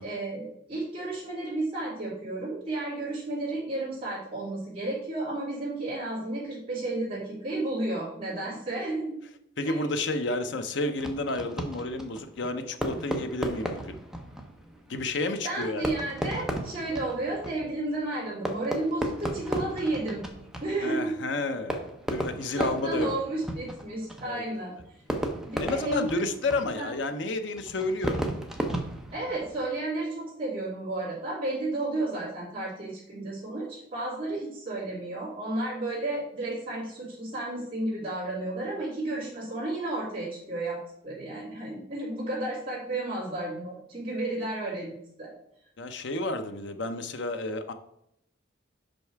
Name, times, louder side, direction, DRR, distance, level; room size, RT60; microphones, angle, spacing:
voice 1, 0.0-9.1 9.6-9.8 15.4-20.2 20.6-21.2 22.5-24.7 25.4-26.2 26.7-26.9 29.1-40.8 41.0-45.3, right 2 dB, 30° right, -9 dB, 2.8 m, -32 dB
voice 2, 9.6-14.0 14.9-15.8 20.8-21.8 22.1-23.1 24.2-24.5 25.6-28.2 45.8-47.7, left 2 dB, 70° left, 8 dB, 0.7 m, -31 dB
Fireworks, 11.0-29.8, right 1 dB, 5° right, 0.7 m, -35 dB
5.5 x 5.3 x 4.6 m, 0.76 s
head